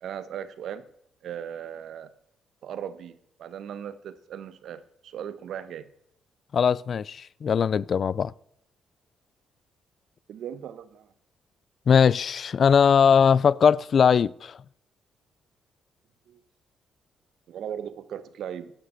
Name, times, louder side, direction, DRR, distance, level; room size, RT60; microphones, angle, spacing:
voice 1, 0.0-0.8 1.2-2.1 2.6-5.9 10.3-11.1 16.3-16.4 17.5-18.7, right 9 dB, 70° right, 1.1 m, -38 dB
voice 2, 6.5-8.3 11.9-14.5, left 7 dB, 50° left, 0.4 m, -20 dB
11.5 x 8.8 x 8.0 m
cardioid pair, 90°, 0 cm